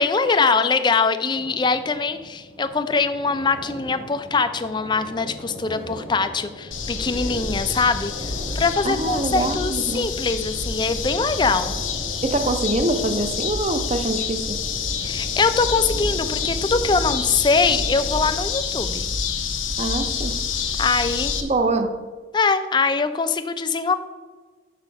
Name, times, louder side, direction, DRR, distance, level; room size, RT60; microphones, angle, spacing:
voice 1, 0.0-11.7 15.0-19.1 20.8-21.3 22.3-23.9, left 4 dB, 20° left, 10 dB, 0.4 m, -22 dB
sound 1, 1.3-18.3, equal, 80° right, 2.4 m, -39 dB
sound 2, 6.7-21.4, left 5 dB, 80° left, 0.9 m, -28 dB
voice 2, 8.8-10.1 12.2-14.6 19.8-20.4 21.4-22.0, right 2 dB, 35° right, 8 dB, 0.6 m, -24 dB
6.5 x 5.1 x 6.5 m, 1.4 s
head